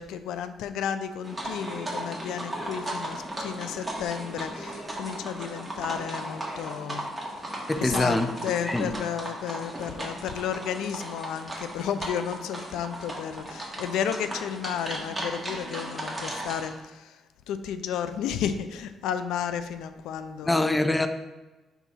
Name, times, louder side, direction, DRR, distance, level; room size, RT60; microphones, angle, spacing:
voice 1, 0.0-7.0 7.8-17.1 17.5-20.7, left 8 dB, 90° left, 10 dB, 0.3 m, -32 dB
sound 1, 1.2-16.7, right 1 dB, 10° right, 1.5 m, -36 dB
voice 2, 7.7-8.3 8.6-8.9 20.4-21.1, left 2 dB, 15° left, 9 dB, 0.5 m, -24 dB
4.6 x 3.9 x 5.5 m, 1.1 s
cardioid pair, 90°, 0 cm